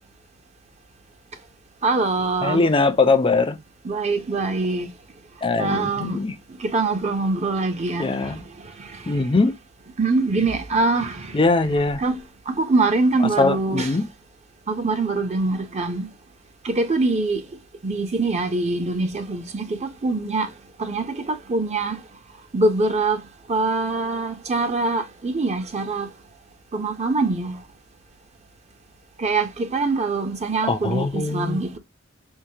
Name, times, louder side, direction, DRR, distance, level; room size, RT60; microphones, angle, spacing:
voice 1, 1.8-2.7 3.8-4.9 5.6-6.2 6.6-8.4 8.8-9.3 10.0-11.4 11.7-12.2 12.5-14.0 14.7-16.1 16.6-17.4 17.8-20.5 20.8-22.0 22.5-23.2 23.5-26.1 26.7-27.6 29.2-31.8, right 3 dB, 35° right, 0.6 m, -24 dB
voice 2, 2.4-3.6 5.4-6.3 8.0-8.4 9.1-9.5 11.3-12.0 13.4-14.0 30.7-31.6, left 3 dB, 25° left, 0.5 m, -21 dB
4.6 x 2.1 x 2.7 m
head